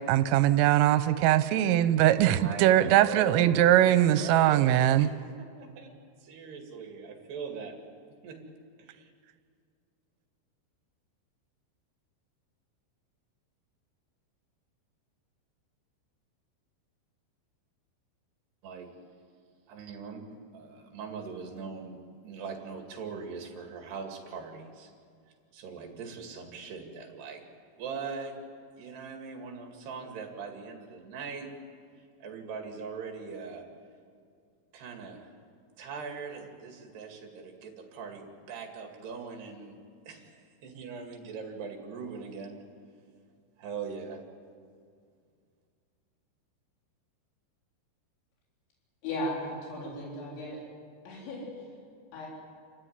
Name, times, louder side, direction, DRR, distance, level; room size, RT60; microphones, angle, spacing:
voice 1, 0.1-5.1, right 12 dB, 85° right, 12 dB, 3.4 m, -21 dB
voice 2, 2.4-5.9 6.2-7.8 8.2-8.4 8.8-9.1 18.6-18.9 19.7-24.9 25.5-27.4 27.8-28.3 28.8-31.5 32.0-33.7 34.7-35.3 35.8-39.8 40.1-42.6 43.6-44.2, right 5 dB, 60° right, 2 dB, 4.0 m, -41 dB
voice 3, 49.0-50.6 51.1-51.5 52.1-52.3, left 1 dB, 65° left, -3 dB, 6.0 m, -36 dB
29.0 x 14.0 x 9.5 m, 2.2 s
omnidirectional pair, 5.7 m